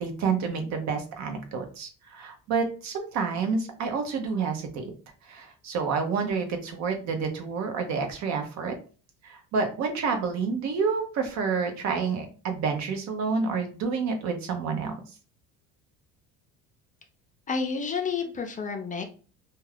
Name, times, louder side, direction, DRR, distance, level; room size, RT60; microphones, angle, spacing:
voice 1, 0.0-4.9 5.2-8.8 9.2-14.9, right 5 dB, 65° right, 5 dB, 0.8 m, -29 dB
voice 2, 17.5-19.0, left 5 dB, 25° left, 4 dB, 0.5 m, -30 dB
2.3 x 2.2 x 3.3 m, 0.37 s
cardioid pair, 105°, 30 cm